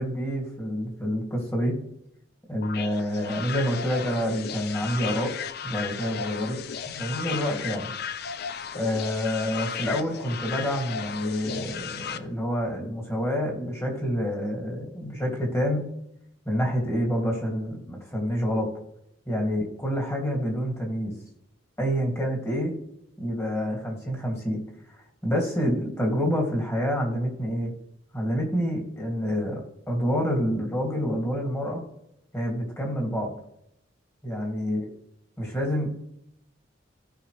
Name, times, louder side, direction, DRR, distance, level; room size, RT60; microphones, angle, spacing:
voice 1, 0.0-1.8 2.5-5.3 5.6-6.6 6.9-7.9 8.7-15.9 16.5-18.7 19.3-21.1 21.8-22.8 23.2-24.6 25.2-27.7 28.1-31.9 32.3-33.3 34.2-34.9 35.4-35.9, equal, 15° left, 0 dB, 2.6 m, -27 dB
sound 1, 2.6-12.2, left 7 dB, 55° left, 0.5 m, -35 dB
16.5 x 5.6 x 3.4 m, 0.78 s
head